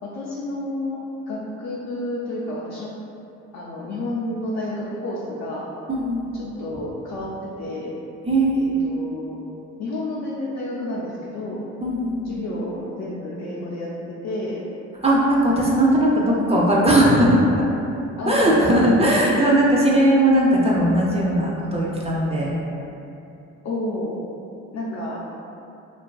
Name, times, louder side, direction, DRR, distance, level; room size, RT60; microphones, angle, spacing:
voice 1, 0.0-1.0 1.3-2.9 3.5-5.7 6.3-7.9 8.5-9.4 9.8-11.6 12.2-14.6 18.2-18.9 23.6-24.2 24.7-25.2, left 1 dB, 65° left, -6 dB, 0.5 m, -30 dB
voice 2, 5.9-6.4 8.3-8.9 11.8-12.4 15.0-17.4 18.3-22.6, right 1 dB, 20° right, -4 dB, 0.4 m, -18 dB
2.5 x 2.3 x 2.3 m, 2.7 s
cardioid pair, 90°, 30 cm